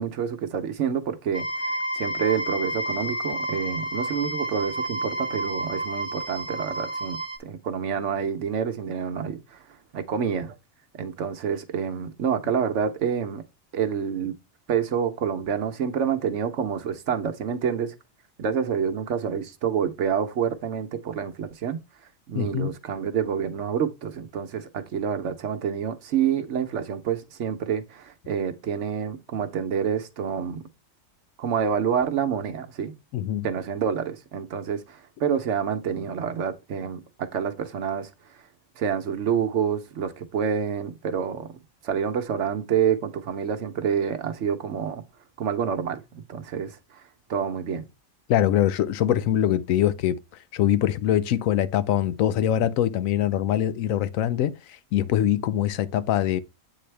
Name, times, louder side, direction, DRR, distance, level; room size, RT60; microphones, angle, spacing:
voice 1, 0.0-9.6 9.9-10.5 11.0-13.4 13.7-14.3 14.7-17.9 18.4-21.8 22.3-30.6 31.4-32.9 33.4-38.1 38.8-41.5 41.8-45.0 45.4-46.8 47.3-47.8, right 7 dB, 65° right, 1.1 m, -28 dB
sound 1, 1.3-7.4, right 1 dB, 15° left, 0.7 m, -30 dB
voice 2, 22.3-22.7 33.1-33.5 48.3-50.2 50.5-56.4, left 11 dB, 80° left, 1.0 m, -23 dB
8.4 x 4.0 x 3.3 m
omnidirectional pair, 1.4 m